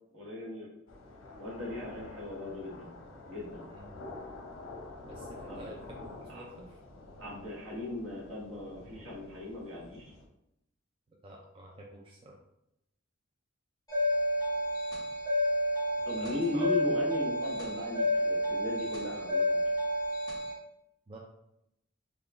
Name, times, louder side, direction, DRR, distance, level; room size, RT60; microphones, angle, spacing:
voice 1, 0.1-0.7 1.4-2.9 3.3-3.7 5.5-5.7 6.3-6.4 7.2-10.1 16.0-19.6, left 2 dB, 75° right, -4 dB, 1.2 m, -37 dB
sound 1, 0.9-10.3, left 2 dB, 75° left, 0.7 m, -48 dB
voice 2, 5.0-6.8 11.2-12.3 16.2-16.7 21.1-21.2, right 1 dB, 25° right, -2 dB, 0.3 m, -48 dB
sound 2, 13.9-20.5, equal, 20° left, 1.2 m, -30 dB
3.7 x 2.3 x 3.4 m, 0.82 s
head